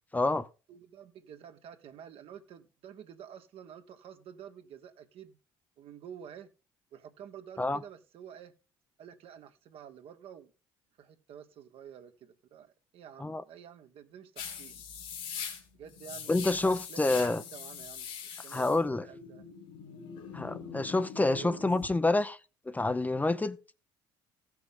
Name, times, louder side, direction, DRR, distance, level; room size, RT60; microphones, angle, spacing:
voice 1, 0.1-0.5 7.6-7.8 13.2-13.4 16.3-17.4 18.5-19.1 20.3-22.4 22.7-23.6, left 2 dB, 15° left, 0.6 m, -28 dB
voice 2, 0.7-5.4 5.8-6.5 6.9-8.5 9.0-10.5 11.0-14.8 15.8-18.1 18.4-19.4 21.3-21.6, right 9 dB, 60° right, 1.2 m, -49 dB
sound 1, 14.4-21.9, left 7 dB, 75° left, 2.8 m, -42 dB
15.0 x 6.3 x 3.6 m
hypercardioid pair, 65°, 11 cm